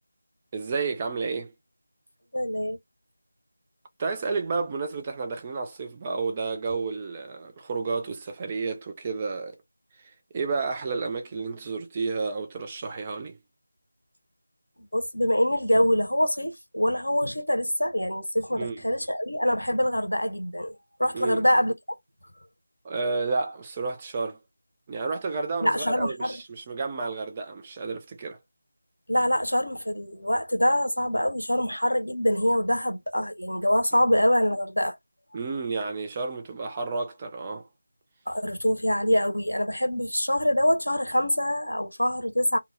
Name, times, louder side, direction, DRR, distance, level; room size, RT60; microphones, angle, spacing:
voice 1, 0.5-1.5 4.0-9.6 10.3-13.4 18.5-18.8 21.1-21.5 22.8-24.4 24.9-28.4 35.3-37.7, right 4 dB, 20° right, 0.4 m, -31 dB
voice 2, 2.3-2.8 14.9-21.7 25.6-26.4 29.1-35.0 38.3-42.6, equal, 80° left, 0.8 m, -25 dB
2.2 x 2.0 x 3.1 m
figure-of-eight pair, 165°, 0 cm